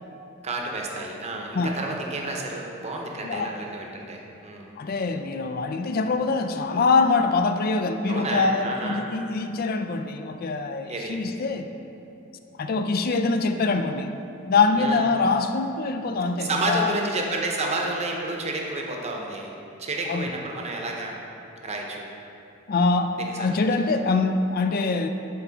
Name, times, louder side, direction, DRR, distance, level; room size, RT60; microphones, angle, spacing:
voice 1, 0.4-4.7 8.1-9.0 10.9-11.2 14.7-15.0 16.4-19.5 19.8-21.2 21.6-22.1 23.1-23.7, right 2 dB, 30° right, 0 dB, 0.7 m, -30 dB
voice 2, 3.2-3.5 4.8-11.7 12.6-14.1 14.5-17.0 20.1-20.3 22.7-25.1, left 4 dB, 45° left, 7 dB, 0.4 m, -24 dB
8.4 x 4.4 x 3.9 m, 2.8 s
head